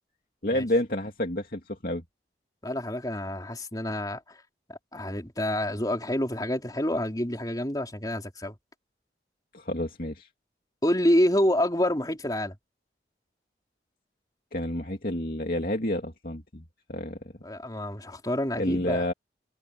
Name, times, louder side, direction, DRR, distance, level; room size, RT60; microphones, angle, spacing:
voice 1, 0.4-2.0 9.5-10.3 14.5-16.6 16.9-17.2 18.6-19.1, left 1 dB, 55° left, 2.7 m, -29 dB
voice 2, 2.6-4.2 4.7-8.6 10.8-12.6 17.4-19.1, left 1 dB, 20° left, 3.6 m, -27 dB
head